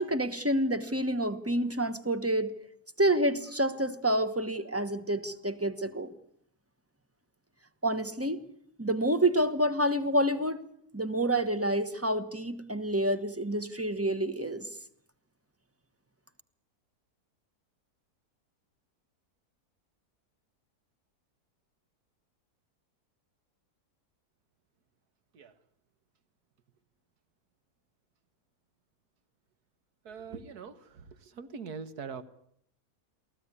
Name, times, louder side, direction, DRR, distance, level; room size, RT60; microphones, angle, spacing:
voice 1, 0.0-2.6 3.0-6.1 7.8-8.4 8.8-10.6 10.9-14.7, right 1 dB, 10° right, 11 dB, 1.0 m, -28 dB
voice 2, 30.1-32.2, right 5 dB, 75° right, 12 dB, 1.9 m, -42 dB
23.5 x 15.5 x 9.8 m, 0.70 s
omnidirectional pair, 1.7 m